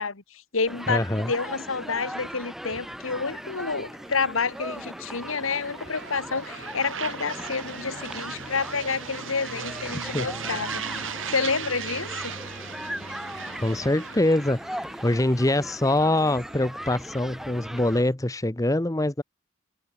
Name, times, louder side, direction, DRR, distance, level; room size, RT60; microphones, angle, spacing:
voice 1, 0.0-1.0 1.3-12.3, left 4 dB, 90° left, 1.8 m, -29 dB
Human group actions, 0.7-18.0, equal, ahead, 2.7 m, -39 dB
voice 2, 0.9-1.3 9.9-10.3 13.6-19.2, left 1 dB, 15° left, 0.8 m, -24 dB
sound 1, 3.3-18.1, right 6 dB, 75° right, 4.0 m, -39 dB
head